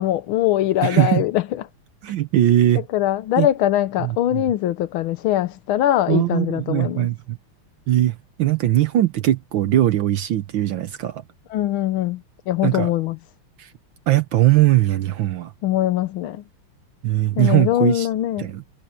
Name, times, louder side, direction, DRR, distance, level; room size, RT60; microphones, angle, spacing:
voice 1, 0.0-1.7 2.9-7.1 11.5-12.2 12.5-13.2 15.6-16.4 17.4-18.5, left 13 dB, 80° left, 1.6 m, -22 dB
voice 2, 0.8-1.2 2.0-2.9 3.4-3.5 4.0-4.4 6.1-7.4 7.9-11.2 12.6-12.9 13.6-13.7 14.1-15.5 17.0-18.1 18.4-18.6, right 14 dB, 70° right, 1.5 m, -20 dB
omnidirectional pair, 2.3 m